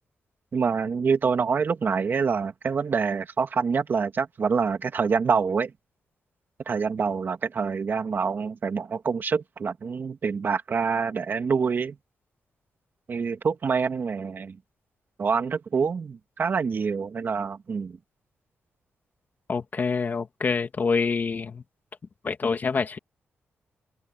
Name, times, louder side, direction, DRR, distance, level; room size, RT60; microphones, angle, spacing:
voice 1, 0.5-5.7 6.7-12.0 13.1-14.6 15.2-18.0, right 5 dB, 50° right, 2.4 m, -26 dB
voice 2, 19.5-21.6 22.2-23.0, left 5 dB, 45° left, 2.6 m, -26 dB
cardioid pair, 100°, 4 cm